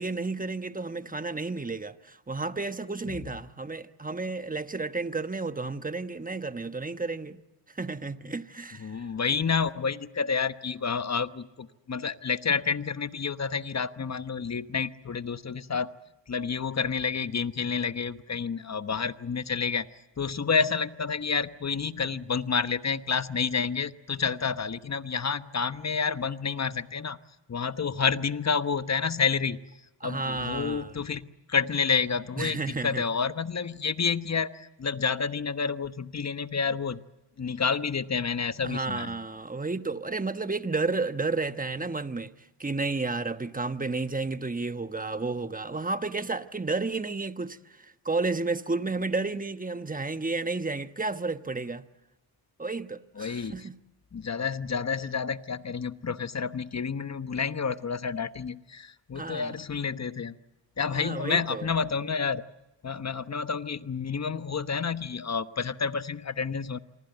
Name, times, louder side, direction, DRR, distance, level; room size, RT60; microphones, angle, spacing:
voice 1, 0.0-7.4 7.7-9.1 30.0-31.0 32.4-33.0 38.6-42.3 42.6-51.8 52.6-53.8 59.1-59.6 60.9-61.7, right 3 dB, 15° right, 1.2 m, -32 dB
voice 2, 8.8-15.9 16.3-19.9 20.2-27.2 27.5-29.6 30.0-37.0 37.4-39.2 53.2-53.7 54.1-60.4 60.8-62.4 62.8-66.8, left 5 dB, 35° left, 1.1 m, -29 dB
27.0 x 23.5 x 8.0 m
cardioid pair, 65°, 49 cm